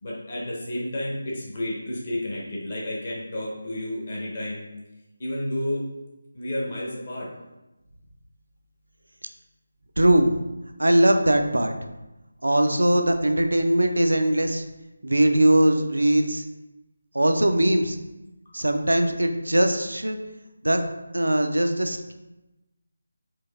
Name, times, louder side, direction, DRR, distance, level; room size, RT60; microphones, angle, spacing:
voice 1, 0.0-4.7 5.2-5.8 6.3-7.3, left 1 dB, 40° left, -5 dB, 1.0 m, -31 dB
voice 2, 10.0-10.3 10.8-11.7 12.4-14.6 15.0-16.4 17.1-18.0 18.5-20.2 20.6-20.8 21.1-22.1, right 1 dB, 75° right, 6 dB, 0.4 m, -20 dB
4.5 x 2.5 x 2.4 m, 1.0 s
figure-of-eight pair, 160°, 0 cm